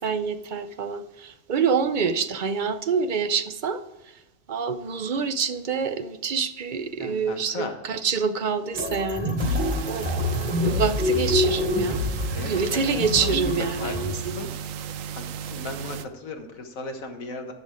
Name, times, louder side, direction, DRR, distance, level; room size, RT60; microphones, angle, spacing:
voice 1, 0.0-3.8 4.5-9.6 9.9-12.0 12.5-14.5, right 5 dB, 50° right, 10 dB, 0.6 m, -26 dB
voice 2, 7.0-7.8 9.7-9.8 12.3-12.8 13.2-13.3 13.8-14.5 14.8-14.9 15.2-15.3 15.5-17.5, left 3 dB, 85° left, 4 dB, 1.8 m, -36 dB
sound 1, 8.7-14.0, left 2 dB, 5° right, 3.2 m, -26 dB
sound 2, 9.4-16.1, right 8 dB, 75° right, 1.0 m, -35 dB
11.5 x 6.1 x 5.0 m, 0.96 s
omnidirectional pair, 1.4 m